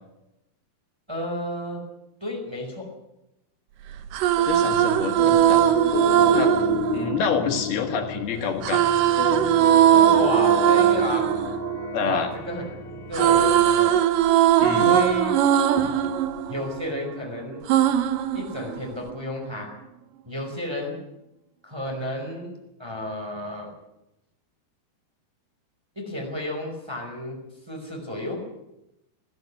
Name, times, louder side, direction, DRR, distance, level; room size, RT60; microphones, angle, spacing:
voice 1, 1.1-1.8 2.2-2.9 6.5-6.7 10.0-11.3 12.0-14.0 14.7-15.4 16.5-17.6 18.3-19.7 20.2-21.0 21.6-23.7 25.9-27.4 27.7-28.5, left 1 dB, 5° right, 1 dB, 4.6 m, -32 dB
sound 1, 3.9-8.0 8.6-12.7 12.9-17.2 17.7-19.1, right 11 dB, 70° right, 2.5 m, -20 dB
sound 2, 4.4-13.6, left 7 dB, 60° left, 1.9 m, -31 dB
voice 2, 4.5-5.6 6.3-6.5 6.9-8.8 11.9-12.3 14.6-15.0 15.8-15.9, left 6 dB, 75° left, 5 dB, 3.6 m, -27 dB
20.0 x 14.0 x 9.7 m, 0.90 s
omnidirectional pair, 4.4 m